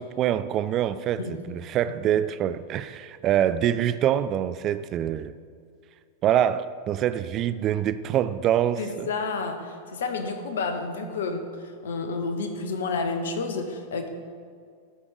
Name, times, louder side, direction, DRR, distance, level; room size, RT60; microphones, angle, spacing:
voice 1, 0.0-5.3 6.2-9.1, right 10 dB, 35° right, 14 dB, 0.3 m, -25 dB
voice 2, 8.8-14.1, left 4 dB, 60° left, 6 dB, 1.0 m, -30 dB
12.5 x 5.3 x 4.7 m, 2.1 s
figure-of-eight pair, 90°, 0 cm